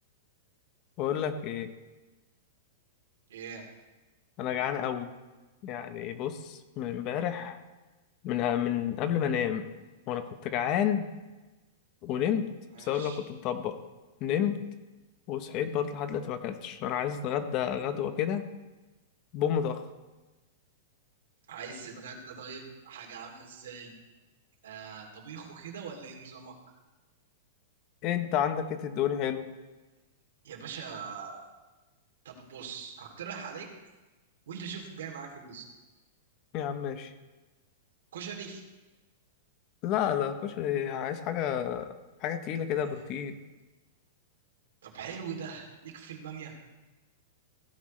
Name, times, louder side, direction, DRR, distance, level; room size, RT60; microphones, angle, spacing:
voice 1, 1.0-1.7 4.4-5.1 5.6-7.6 8.2-9.7 10.1-11.1 12.0-12.4 12.8-13.7 14.2-14.6 15.3-18.4 19.3-19.8 28.0-29.5 36.5-37.1 39.8-41.9 42.2-43.3, left 9 dB, 30° left, 10 dB, 0.8 m, -30 dB
voice 2, 3.3-3.6 12.7-13.2 21.5-23.9 24.6-26.5 30.4-31.4 32.2-33.7 34.5-35.7 38.1-38.6 42.8-43.2 44.8-46.5, right 6 dB, 85° right, 0 dB, 2.9 m, -42 dB
16.0 x 11.0 x 3.2 m, 1.1 s
supercardioid pair, 165°, 0 cm